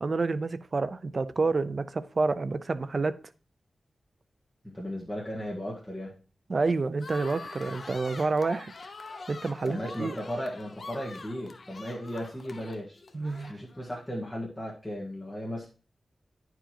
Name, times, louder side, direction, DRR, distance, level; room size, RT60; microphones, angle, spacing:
voice 1, 0.0-3.2 6.5-8.7 9.3-10.1 13.1-13.5, right 3 dB, 50° right, 0.4 m, -28 dB
voice 2, 4.6-6.1 9.6-13.0 13.5-15.7, equal, 5° left, 1.6 m, -36 dB
sound 1, 7.0-13.9, left 3 dB, 55° left, 0.6 m, -44 dB
10.0 x 4.7 x 2.9 m
wide cardioid pair, 100°, 0 cm